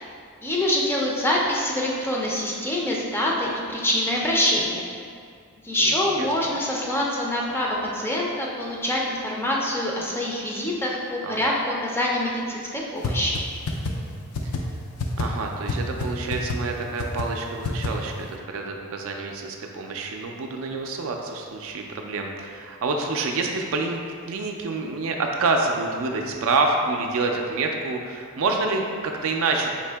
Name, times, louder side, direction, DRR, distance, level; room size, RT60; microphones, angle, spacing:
voice 1, 0.4-4.8 5.6-13.4, left 1 dB, 10° left, -3 dB, 0.4 m, -25 dB
voice 2, 5.8-6.6 11.2-11.4 14.4-14.5 15.2-29.7, right 3 dB, 70° right, 2 dB, 0.4 m, -27 dB
sound 1, 13.0-13.1 13.4-13.5 13.7-13.9 14.3-14.6 15.0-15.2 15.7-15.8 16.0-16.1 16.3-16.6 17.0-17.2 17.6-17.9, left 5 dB, 75° left, 0.4 m, -26 dB
4.4 x 2.7 x 3.3 m, 2.2 s
head